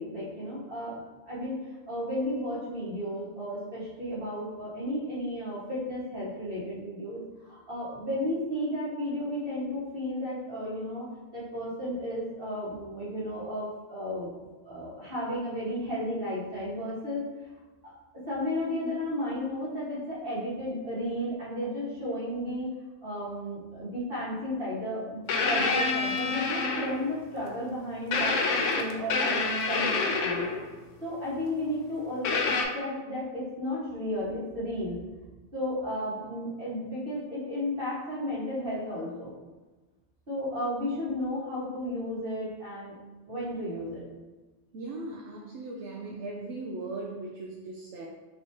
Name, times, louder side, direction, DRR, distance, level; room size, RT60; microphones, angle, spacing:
voice 1, 0.0-1.6 1.9-11.1 11.3-14.3 14.6-17.2 17.8-17.9 18.3-22.7 23.0-30.5 31.0-35.0 35.5-39.3 40.3-43.0 43.3-44.0, left 1 dB, 50° right, -8 dB, 1.8 m, -33 dB
sound 1, 25.3-27.2 28.1-30.7 32.2-32.6, left 4 dB, 85° left, 1.0 m, -27 dB
voice 2, 44.7-48.1, right 2 dB, 70° right, -1 dB, 0.9 m, -38 dB
5.1 x 3.2 x 2.8 m, 1.2 s
omnidirectional pair, 1.2 m